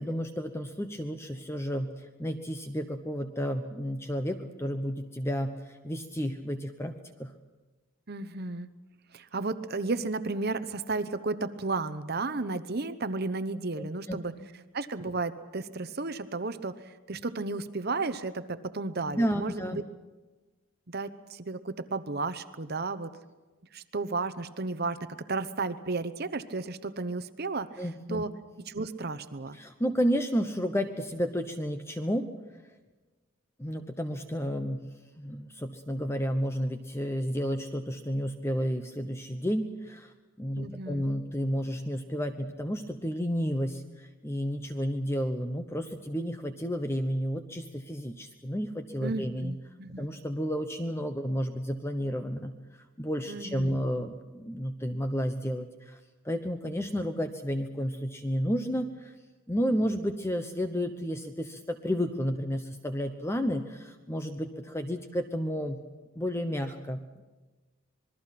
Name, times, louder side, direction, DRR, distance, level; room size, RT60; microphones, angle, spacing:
voice 1, 0.0-6.9 7.2-7.3 13.8-14.2 19.1-19.8 27.8-28.2 29.5-32.3 33.6-34.9 35.2-40.1 40.4-49.6 50.0-56.0 56.2-59.1 59.5-65.8 66.2-67.2, equal, 10° left, 7 dB, 0.9 m, -31 dB
voice 2, 8.1-8.7 9.1-14.3 14.7-19.6 20.9-23.1 23.7-27.8 28.1-28.3 28.7-29.6 40.6-41.0 49.0-50.1 53.3-53.8, right 3 dB, 50° right, 12 dB, 0.9 m, -33 dB
26.5 x 21.5 x 5.9 m, 1.2 s
head